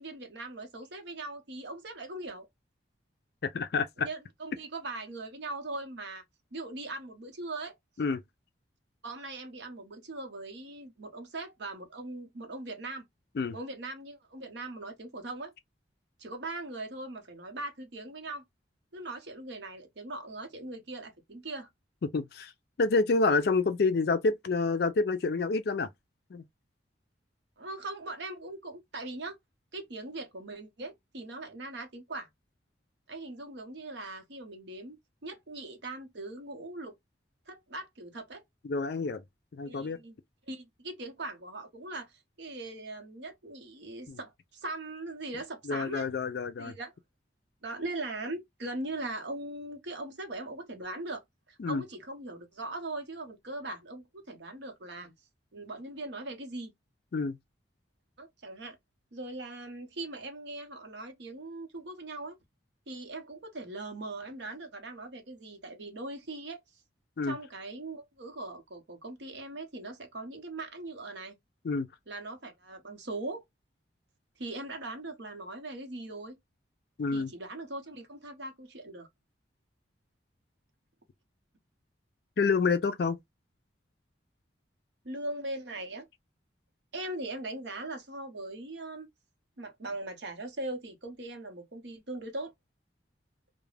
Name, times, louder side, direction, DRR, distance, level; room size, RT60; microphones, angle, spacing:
voice 1, 0.0-2.5 4.0-6.2 6.5-7.8 9.0-13.1 13.5-15.5 16.2-18.4 18.9-21.7 27.6-29.4 29.7-32.3 33.1-36.9 37.5-38.4 39.7-40.2 40.5-46.1 46.6-46.9 47.6-51.2 51.5-55.1 55.5-56.7 58.2-58.8 59.1-62.4 62.9-66.6 67.2-71.4 72.1-73.4 74.4-76.4 77.1-79.1 85.0-86.1 86.9-89.1 89.6-92.5, right 2 dB, 65° right, 0.8 m, -40 dB
voice 2, 3.5-4.1 8.0-8.2 13.4-13.6 22.1-22.5 22.8-25.9 26.3-26.4 38.6-39.2 39.5-40.0 44.1-44.2 45.7-46.7 51.6-51.8 57.1-57.4 67.2-67.4 71.6-71.9 77.0-77.3 82.4-83.2, left 4 dB, 55° left, 0.4 m, -28 dB
2.4 x 2.1 x 3.1 m
head